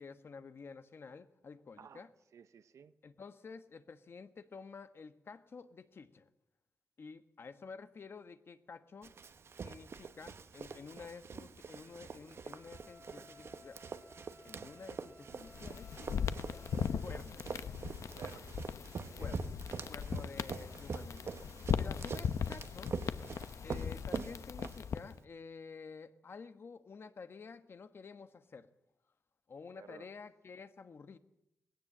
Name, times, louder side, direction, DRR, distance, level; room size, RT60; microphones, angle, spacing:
voice 1, 0.0-2.1 3.0-6.3 7.0-9.1 9.6-13.8 14.4-16.7 17.0-17.5 19.2-19.4 19.9-21.3 21.8-23.0 23.6-28.7 29.5-31.2, left 5 dB, 50° left, 10 dB, 1.3 m, -51 dB
voice 2, 2.3-2.9 16.3-16.5 18.1-18.7 19.1-19.4 29.7-30.1, right 7 dB, 85° right, 12 dB, 0.7 m, -55 dB
Run, 9.0-25.2, right 5 dB, 55° right, 1.1 m, -45 dB
Wind instrument woodwind instrument, 12.5-17.1, left 1 dB, 15° right, 3.3 m, -60 dB
sound 1, 15.4-25.2, left 7 dB, 80° left, 0.8 m, -39 dB
21.0 x 17.0 x 8.6 m, 0.82 s
wide cardioid pair, 145°, 5 cm